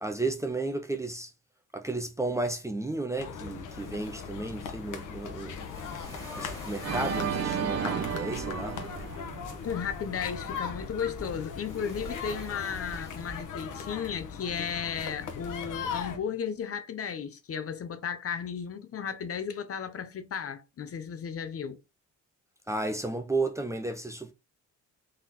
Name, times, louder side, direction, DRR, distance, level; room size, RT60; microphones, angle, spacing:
voice 1, 0.0-1.3 1.7-5.6 6.4-8.8 22.7-24.3, right 2 dB, 10° right, 0.6 m, -33 dB
sound 1, 3.2-16.2, left 6 dB, 65° left, 1.1 m, -39 dB
sound 2, 3.7-13.9, equal, 10° left, 2.1 m, -47 dB
Organ, 6.8-9.9, right 7 dB, 50° right, 0.7 m, -33 dB
voice 2, 9.6-21.8, left 7 dB, 45° left, 0.8 m, -34 dB
3.8 x 3.3 x 4.1 m
cardioid pair, 90°, 33 cm